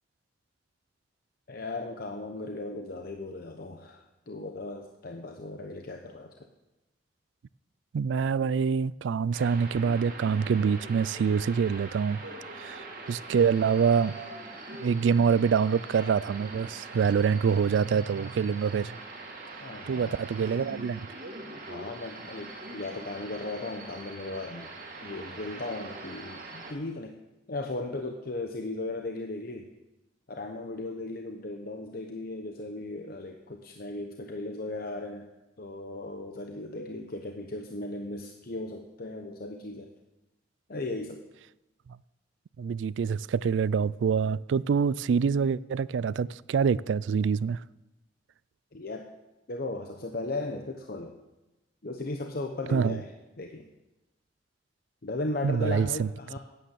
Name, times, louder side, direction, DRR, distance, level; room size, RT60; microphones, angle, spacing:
voice 1, 1.5-6.4 19.6-20.2 21.5-24.7 25.0-27.1 27.5-29.7 30.3-35.3 35.6-39.9 40.7-41.2 48.7-49.1 49.5-51.2 51.8-53.1 53.4-53.7 55.0-56.4, left 2 dB, 55° left, 0.9 m, -36 dB
voice 2, 7.9-12.2 12.6-14.1 14.8-19.0 19.9-21.0 42.6-47.6 52.7-53.0 55.4-56.1, right 6 dB, 90° right, 0.3 m, -26 dB
sound 1, 9.3-26.7, right 2 dB, 50° right, 2.3 m, -43 dB
11.5 x 9.3 x 7.5 m
head